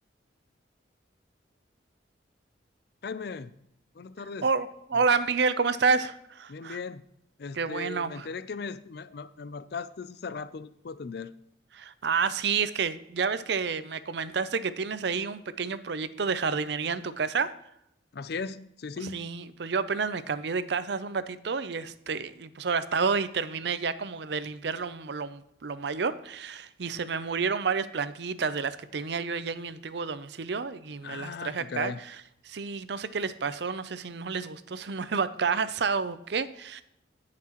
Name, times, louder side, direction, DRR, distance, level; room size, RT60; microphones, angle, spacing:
voice 1, 3.0-3.5 3.9-4.5 4.9-5.0 6.5-7.0 7.4-11.3 18.1-19.3 31.0-32.0, left 5 dB, 55° left, 15 dB, 0.4 m, -38 dB
voice 2, 4.4-6.8 7.5-8.3 11.7-17.5 19.0-32.2 32.4-36.8, right 5 dB, 65° right, 14 dB, 0.5 m, -30 dB
17.0 x 5.9 x 3.0 m, 0.79 s
head